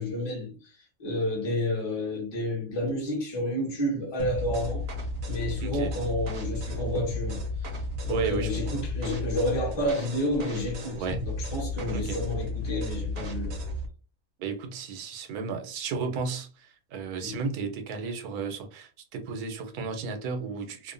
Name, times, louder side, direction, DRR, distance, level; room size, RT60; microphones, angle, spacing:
voice 1, 0.0-4.9 5.3-7.7 8.0-13.6 17.2-17.4, left 1 dB, 25° left, 0.7 m, -30 dB
sound 1, 4.2-13.9, left 1 dB, 60° right, 0.7 m, -33 dB
voice 2, 5.6-5.9 8.1-8.7 11.0-11.2 11.9-12.2 14.4-16.5 16.9-20.9, right 5 dB, 90° right, 1.1 m, -33 dB
2.7 x 2.1 x 2.5 m
omnidirectional pair, 1.6 m